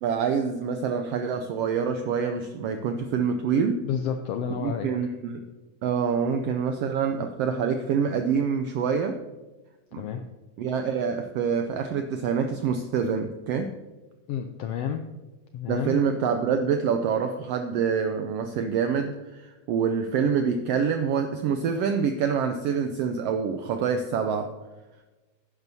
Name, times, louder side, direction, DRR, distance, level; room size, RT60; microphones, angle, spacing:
voice 1, 0.0-3.8 4.6-5.4 5.8-9.2 9.9-10.0 10.6-13.7 15.7-24.5, right 6 dB, 85° right, 6 dB, 1.4 m, -26 dB
voice 2, 3.8-4.9 10.0-10.2 14.3-15.0 15.5-16.0, left 8 dB, 90° left, 6 dB, 1.4 m, -30 dB
10.5 x 10.5 x 2.7 m, 1.1 s
omnidirectional pair, 3.4 m